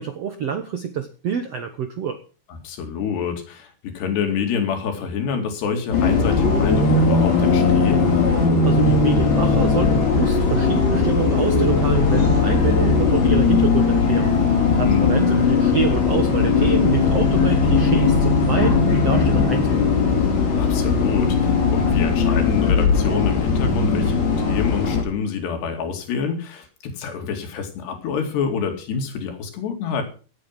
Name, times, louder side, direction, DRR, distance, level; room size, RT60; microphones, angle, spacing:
voice 1, 0.0-2.2 8.6-20.0, right 7 dB, 70° right, 7 dB, 1.5 m, -26 dB
voice 2, 2.5-8.2 14.8-15.1 20.6-30.0, left 6 dB, 85° left, 4 dB, 4.6 m, -27 dB
Bus, 5.9-25.0, left 4 dB, 65° left, 5.7 m, -18 dB
17.0 x 8.8 x 5.9 m, 0.38 s
omnidirectional pair, 4.7 m